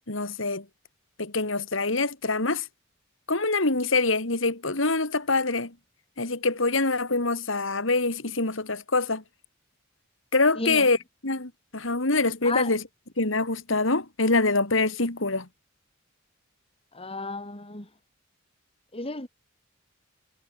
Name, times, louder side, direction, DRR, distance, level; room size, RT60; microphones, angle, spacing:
voice 1, 0.1-0.6 1.2-2.7 3.3-5.7 6.2-9.2 10.3-11.0 11.2-12.8 13.2-15.5, left 3 dB, 70° left, 3.0 m, -25 dB
voice 2, 10.5-10.9 12.4-12.7 16.9-17.9 18.9-19.3, left 3 dB, 30° left, 5.2 m, -33 dB
head